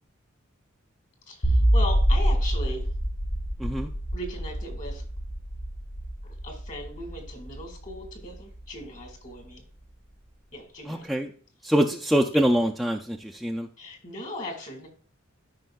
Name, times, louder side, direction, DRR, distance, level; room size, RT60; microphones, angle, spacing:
voice 1, 1.3-2.9 4.1-5.0 6.2-9.6 10.5-11.1 13.8-14.9, left 1 dB, 40° left, 4 dB, 1.8 m, -38 dB
sound 1, 1.4-8.6, equal, 70° left, 1.2 m, -26 dB
voice 2, 10.9-11.3 11.6-13.7, equal, ahead, 0 dB, 0.4 m, -24 dB
12.5 x 5.4 x 2.3 m, 0.41 s
head